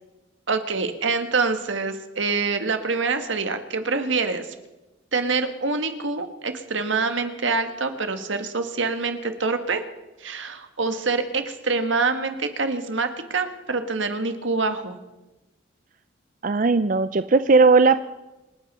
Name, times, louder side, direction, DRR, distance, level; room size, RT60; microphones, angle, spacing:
voice 1, 0.5-4.5 5.1-9.8 10.2-15.0, right 4 dB, 80° right, 8 dB, 1.6 m, -25 dB
voice 2, 16.4-18.1, right 4 dB, 45° right, 11 dB, 0.4 m, -17 dB
27.0 x 9.2 x 5.4 m, 1.0 s
head